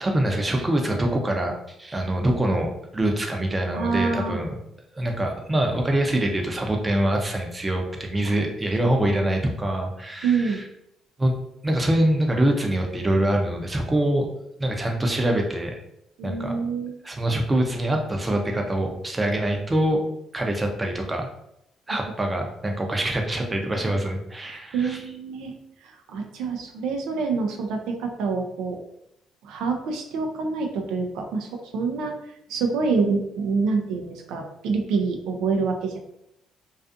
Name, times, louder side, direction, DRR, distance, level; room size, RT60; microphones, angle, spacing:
voice 1, 0.0-4.6 4.9-10.6 11.2-11.4 11.6-14.3 14.6-15.8 16.2-16.5 17.0-20.0 20.3-21.3 21.9-25.0, right 1 dB, 20° right, 2 dB, 0.5 m, -24 dB
voice 2, 3.7-4.4 9.1-9.2 10.2-10.6 16.2-16.9 22.1-22.3 23.9-24.0 24.5-25.5 25.8-28.8 29.4-31.5 31.7-32.2 32.5-36.0, right 4 dB, 85° right, 3 dB, 0.4 m, -26 dB
2.4 x 2.4 x 2.5 m, 0.79 s
cardioid pair, 90°, 0 cm